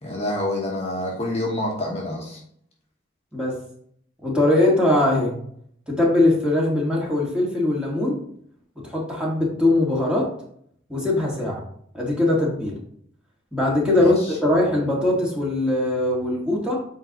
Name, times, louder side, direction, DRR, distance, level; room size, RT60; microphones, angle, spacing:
voice 1, 0.0-2.4 14.0-14.4, left 1 dB, 30° left, -2 dB, 1.2 m, -27 dB
voice 2, 3.3-3.6 4.2-5.4 5.9-8.2 8.7-10.3 10.9-11.6 11.9-12.8 13.5-14.2 14.4-16.8, left 1 dB, 5° right, -4 dB, 1.7 m, -21 dB
7.7 x 4.5 x 3.0 m, 0.65 s
head